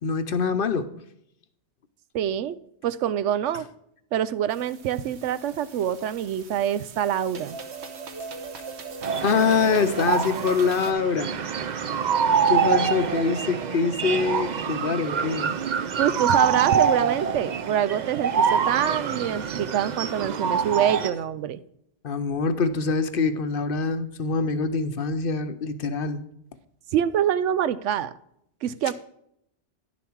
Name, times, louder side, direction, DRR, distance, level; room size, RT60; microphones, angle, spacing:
voice 1, 0.0-0.9 9.2-11.4 12.5-15.5 22.0-26.2, left 5 dB, 55° left, 11 dB, 0.8 m, -24 dB
voice 2, 2.1-2.6 2.8-3.7 4.1-7.6 16.0-21.6 26.9-28.1 28.6-28.9, right 10 dB, 85° right, 15 dB, 0.9 m, -25 dB
sound 1, 4.5-10.9, right 4 dB, 70° right, 1.2 m, -39 dB
sound 2, 9.0-21.1, right 6 dB, 50° right, 0.6 m, -25 dB
10.5 x 7.0 x 4.6 m, 0.73 s
omnidirectional pair, 1.2 m